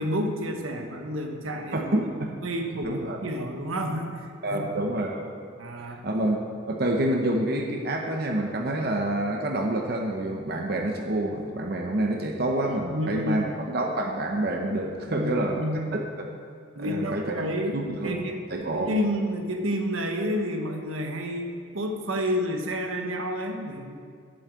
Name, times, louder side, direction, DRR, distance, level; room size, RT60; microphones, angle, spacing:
voice 1, 0.0-1.9 2.4-4.9 5.6-6.0 12.9-13.6 15.0-16.0 16.7-18.4 18.7-24.0, equal, 85° right, 3 dB, 1.2 m, -30 dB
voice 2, 1.7-2.4 2.8-3.2 4.4-5.4 5.8-16.3 16.8-17.3 17.7-18.2 18.5-18.9, right 1 dB, 50° right, 1 dB, 0.8 m, -28 dB
7.9 x 7.8 x 8.2 m, 2.3 s
head